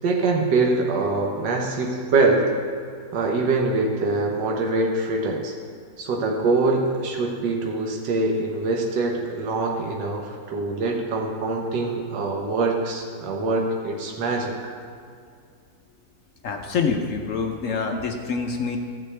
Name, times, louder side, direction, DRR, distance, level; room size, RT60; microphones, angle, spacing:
voice 1, 0.0-2.5 3.1-5.5 6.0-14.7, right 3 dB, 75° right, 0 dB, 1.6 m, -24 dB
voice 2, 16.4-18.8, left 5 dB, 60° left, 3 dB, 0.8 m, -26 dB
15.0 x 7.6 x 3.3 m, 2.2 s
omnidirectional pair, 1.9 m